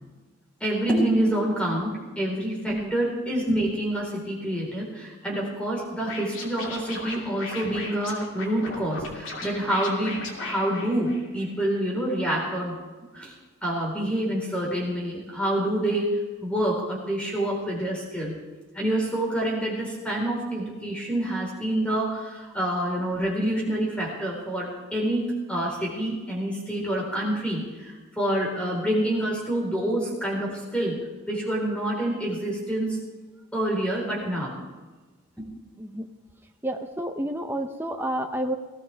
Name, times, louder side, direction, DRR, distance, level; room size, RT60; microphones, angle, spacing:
voice 1, 0.6-12.8 13.1-13.3 13.6-18.4 18.7-31.0 31.3-33.0 33.5-34.6 35.4-35.5, right 1 dB, 5° left, -3 dB, 4.6 m, -27 dB
Scratching (performance technique), 6.0-11.5, left 2 dB, 60° left, 2.9 m, -37 dB
voice 2, 35.8-36.1 36.6-38.6, right 1 dB, 10° right, 4 dB, 0.8 m, -30 dB
19.5 x 17.0 x 3.6 m, 1.3 s
head